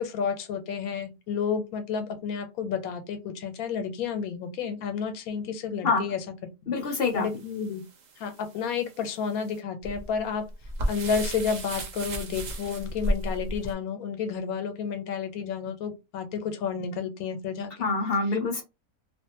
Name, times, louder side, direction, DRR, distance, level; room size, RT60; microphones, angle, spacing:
voice 1, 0.0-6.2 7.1-7.8 8.2-10.4 10.9-17.9, left 6 dB, 85° left, 1.1 m, -31 dB
voice 2, 6.7-7.3 17.8-18.6, left 4 dB, 60° left, 0.6 m, -25 dB
sound 1, 6.8-13.7, right 1 dB, 85° right, 0.4 m, -34 dB
2.5 x 2.4 x 2.7 m
omnidirectional pair, 1.5 m